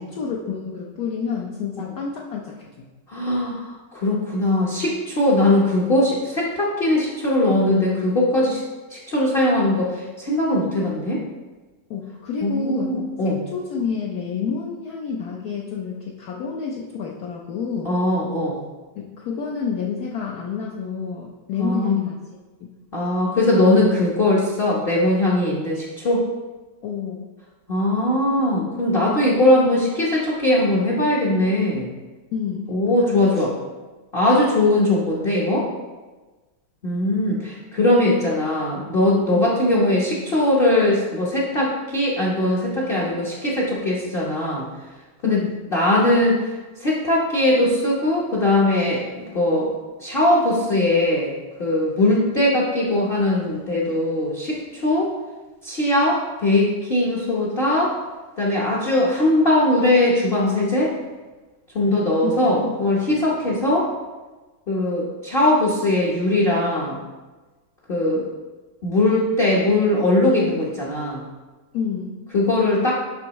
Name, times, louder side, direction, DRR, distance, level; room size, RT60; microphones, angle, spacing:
voice 1, 0.0-2.9 11.9-13.0 13.2-17.9 19.0-22.2 22.6-22.7 26.8-27.2 32.3-32.7 33.1-33.4 39.3-39.5 45.2-45.6 62.2-62.7 71.7-72.2, left 6 dB, 75° left, -2 dB, 0.9 m, -29 dB
voice 2, 3.1-8.6 8.9-11.2 12.4-13.4 17.8-18.6 21.6-22.0 22.9-26.2 27.7-31.9 32.7-33.5 34.1-35.7 36.8-44.7 45.2-45.4 45.7-46.4 46.8-49.7 50.0-51.3 51.6-55.1 55.6-58.0 58.4-60.9 61.7-63.9 64.7-67.0 67.9-68.2 68.8-71.2 72.3-72.9, left 1 dB, 45° left, -5 dB, 0.7 m, -20 dB
7.8 x 5.5 x 3.0 m, 1.2 s
omnidirectional pair, 2.4 m